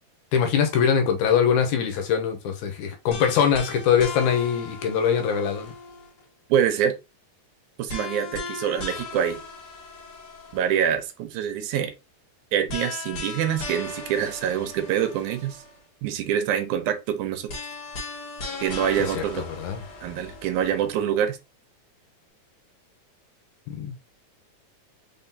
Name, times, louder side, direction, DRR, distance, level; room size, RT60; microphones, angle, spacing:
voice 1, 0.3-5.7 19.1-19.8 23.7-23.9, left 7 dB, 80° left, 2.3 m, -23 dB
sound 1, 3.1-6.2 7.9-10.9 12.7-15.8 17.5-20.9, left 3 dB, 55° left, 2.2 m, -37 dB
voice 2, 6.5-6.9 7.8-9.4 10.5-11.9 12.5-15.6 16.0-17.5 18.6-19.5 20.0-21.4, right 9 dB, 80° right, 2.1 m, -25 dB
4.9 x 3.8 x 2.7 m
omnidirectional pair, 3.5 m